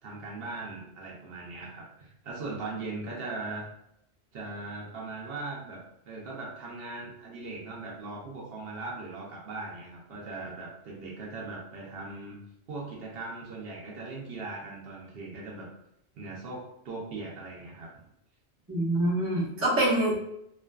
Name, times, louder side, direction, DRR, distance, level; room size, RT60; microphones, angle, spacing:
voice 1, 0.0-3.7 4.3-12.4 12.7-15.7 16.1-17.9 20.1-20.2, right 3 dB, 65° right, -3 dB, 0.8 m, -39 dB
voice 2, 18.7-20.2, right 1 dB, 15° right, -7 dB, 0.5 m, -25 dB
2.5 x 2.4 x 2.2 m, 0.79 s
omnidirectional pair, 1.2 m